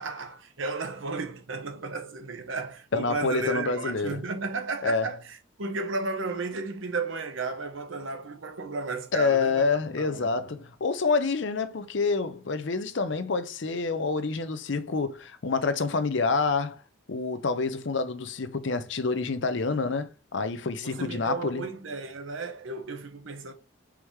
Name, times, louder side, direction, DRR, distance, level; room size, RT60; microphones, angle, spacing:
voice 1, 0.0-9.7 9.9-10.4 20.8-23.5, right 3 dB, 75° right, 0.9 m, -34 dB
voice 2, 2.9-4.2 4.8-5.1 9.1-16.8 17.1-21.7, left 4 dB, 65° left, 0.6 m, -27 dB
4.8 x 3.6 x 3.1 m
head